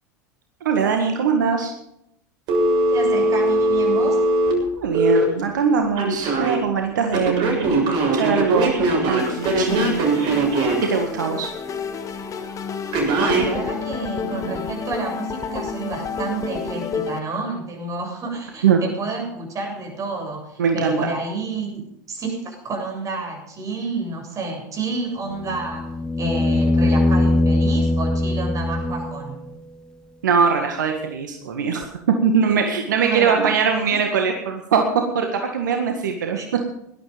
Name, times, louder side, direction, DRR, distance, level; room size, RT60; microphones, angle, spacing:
voice 1, 0.6-1.7 4.7-8.8 9.0-10.0 10.9-11.5 18.6-18.8 20.6-21.0 30.2-31.9 32.2-36.4, right 6 dB, 75° right, 4 dB, 1.8 m, -21 dB
Telephone, 2.5-5.2 6.0-6.6 7.1-10.9 12.9-13.5, right 2 dB, 50° right, 7.1 m, -20 dB
voice 2, 2.9-4.2 12.8-25.9 26.2-29.4 33.0-34.0 36.1-36.5, right 3 dB, 30° right, 1 dB, 7.7 m, -30 dB
sound 1, 9.2-17.2, left 5 dB, 35° left, 2.1 m, -30 dB
sound 2, 25.3-29.4 31.8-31.9, left 2 dB, 5° left, 2.2 m, -21 dB
18.0 x 12.5 x 5.2 m, 0.77 s
hypercardioid pair, 85°, 10 cm